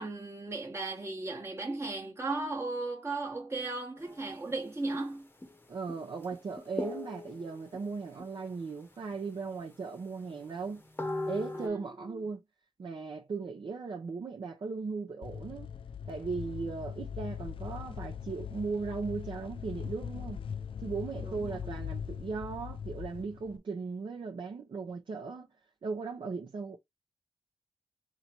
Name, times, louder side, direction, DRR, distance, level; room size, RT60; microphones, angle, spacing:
voice 1, 0.0-5.3 11.5-11.9 12.1-12.2 21.3-21.7, right 3 dB, 25° right, 1.2 m, -36 dB
sound 1, 4.0-4.6 4.9-5.0 5.4-5.6 5.9-7.8 8.2-8.7 9.1-9.2 9.6-9.7 10.3-11.7, left 2 dB, 20° left, 0.9 m, -39 dB
voice 2, 5.7-10.8 11.3-12.4 12.8-15.7 16.1-20.4 20.8-25.5 25.8-26.8, right 4 dB, 55° right, 0.8 m, -37 dB
sound 2, 15.2-23.6, left 8 dB, 55° left, 0.4 m, -40 dB
4.0 x 2.9 x 4.4 m
wide cardioid pair, 95°, 10 cm